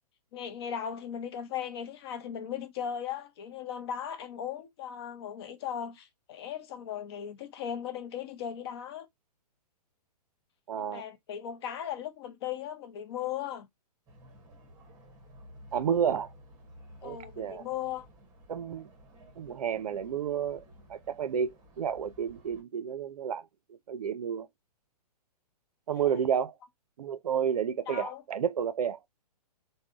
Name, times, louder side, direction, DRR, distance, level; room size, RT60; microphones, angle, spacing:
voice 1, 0.3-9.1 10.7-13.7 17.0-18.1 25.9-26.2 27.9-28.2, left 9 dB, 40° left, 0.6 m, -37 dB
voice 2, 10.7-11.0 15.7-16.3 17.0-17.7 18.5-18.9 19.4-20.6 20.9-23.4 23.7-24.5 25.9-26.5 27.0-29.0, right 8 dB, 65° right, 0.5 m, -31 dB
sound 1, 14.1-22.6, equal, 20° right, 0.9 m, -54 dB
3.5 x 2.1 x 2.4 m
figure-of-eight pair, 120°, 21 cm